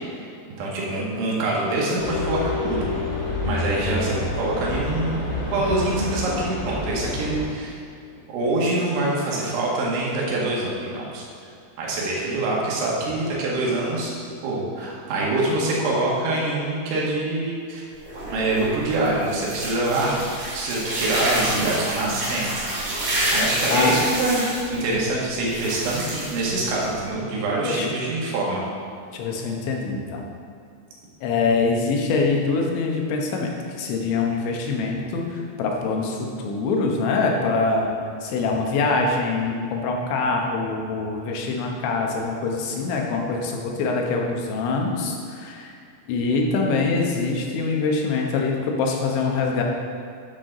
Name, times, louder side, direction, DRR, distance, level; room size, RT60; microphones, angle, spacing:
voice 1, 0.6-2.9 3.4-5.2 5.5-7.8 8.3-11.2 11.8-14.1 14.4-17.8 18.3-20.2 20.5-22.6 23.3-24.4 24.7-28.6, right 2 dB, 90° right, -4 dB, 4.2 m, -25 dB
sound 1, 2.0-7.4, left 2 dB, 45° left, 3.3 m, -28 dB
sound 2, 17.9-27.1, right 1 dB, 45° right, 2.6 m, -28 dB
voice 2, 29.1-30.3 31.2-33.5 33.8-37.9 38.2-45.7 46.1-49.6, left 3 dB, 85° left, 0 dB, 3.5 m, -24 dB
10.5 x 8.5 x 3.8 m, 2.5 s
omnidirectional pair, 5.2 m